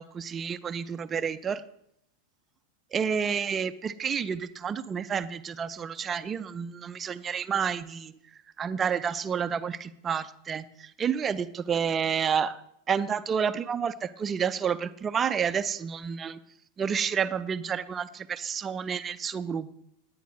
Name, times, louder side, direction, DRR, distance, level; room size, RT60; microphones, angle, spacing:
voice 1, 0.0-1.6 2.9-8.1 8.6-12.6 12.9-16.4 16.8-19.8, right 7 dB, 20° right, 13 dB, 0.6 m, -30 dB
18.5 x 10.0 x 3.2 m, 0.76 s
figure-of-eight pair, 90°, 0 cm